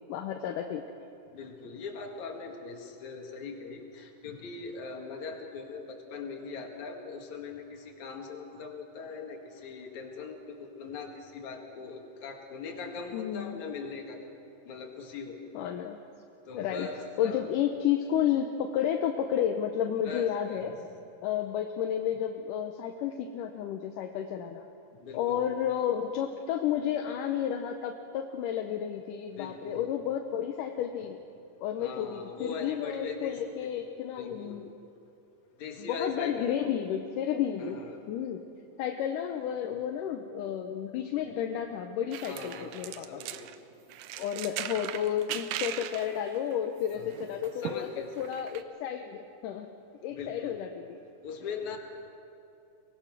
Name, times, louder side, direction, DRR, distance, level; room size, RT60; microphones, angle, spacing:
voice 1, 0.1-0.8 13.1-13.6 15.5-16.0 16.5-16.9 17.2-20.7 21.2-24.6 25.1-31.2 31.6-34.7 35.8-37.8 38.1-38.4 38.8-43.2 44.2-47.9 48.2-49.7 50.0-51.0, left 9 dB, 80° left, 4 dB, 2.3 m, -31 dB
voice 2, 1.3-14.4 14.6-15.4 16.5-17.6 20.0-20.7 25.0-25.7 29.4-29.9 31.8-33.4 34.2-34.6 35.6-36.7 37.6-38.0 42.1-43.5 46.9-47.2 47.5-48.3 50.1-50.5 51.2-51.8, left 4 dB, 60° left, 2 dB, 3.1 m, -41 dB
sound 1, 42.1-43.6 43.9-48.6, right 12 dB, 80° right, 2.2 m, -39 dB
24.0 x 19.0 x 6.1 m, 2.8 s
omnidirectional pair, 3.9 m